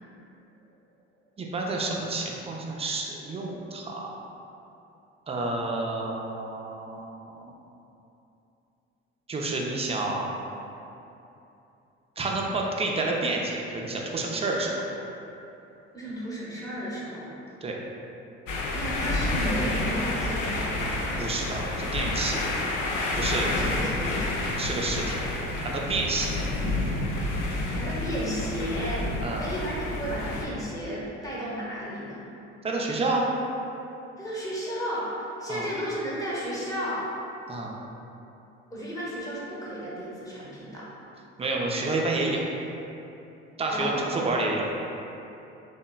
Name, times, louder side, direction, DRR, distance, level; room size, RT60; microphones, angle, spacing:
voice 1, 1.4-4.2 5.3-7.5 9.3-10.3 12.2-14.8 17.6-17.8 21.2-22.4 23.2-23.5 24.6-25.2 25.6-26.5 29.2-29.5 32.6-33.3 35.5-35.7 37.5-37.7 41.4-42.5 43.6-44.7, right 2 dB, 20° right, -1 dB, 0.3 m, -29 dB
voice 2, 15.9-17.3 18.7-20.7 23.3-24.4 27.7-29.0 29.4-32.2 34.2-37.1 38.7-40.9 43.7-43.9, equal, 10° left, -7 dB, 0.8 m, -33 dB
Tent In A Storm, 18.5-30.4, left 2 dB, 65° left, 0.5 m, -29 dB
2.9 x 2.2 x 2.2 m, 2.9 s
hypercardioid pair, 60°, 32 cm